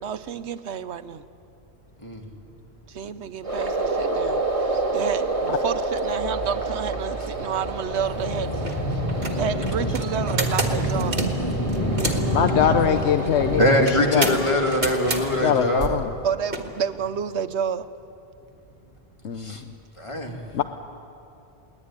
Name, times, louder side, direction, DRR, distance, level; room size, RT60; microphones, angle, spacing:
voice 1, 0.0-1.2 2.9-8.6 9.4-11.2 16.2-17.9, right 7 dB, 85° right, 12 dB, 1.1 m, -30 dB
sound 1, 3.4-15.9, right 2 dB, 30° right, 2.0 m, -29 dB
sound 2, 8.1-8.2 8.6-8.8 9.1-12.3 13.9-15.2 16.5-16.6, right 2 dB, 55° right, 2.2 m, -29 dB
voice 2, 8.2-12.9 13.4-16.0 19.4-19.6 20.0-20.6, left 1 dB, 25° left, 2 dB, 2.3 m, -24 dB
voice 3, 12.3-13.6 14.1-14.3 15.4-16.1 19.2-19.7 20.5-20.6, left 8 dB, 90° left, 8 dB, 1.1 m, -22 dB
21.5 x 18.5 x 9.7 m, 2.7 s
omnidirectional pair, 1.1 m